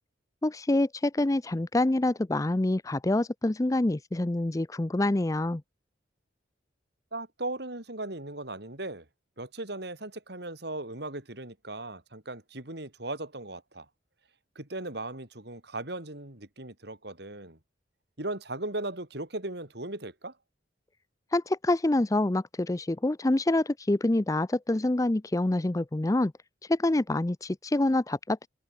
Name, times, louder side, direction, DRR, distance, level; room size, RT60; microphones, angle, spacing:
voice 1, 0.4-5.6 21.3-26.3 26.7-28.5, left 2 dB, 20° left, 0.5 m, -26 dB
voice 2, 7.1-9.1 9.4-13.9 14.6-17.6 18.2-20.3, right 2 dB, 60° right, 3.9 m, -37 dB
open air
head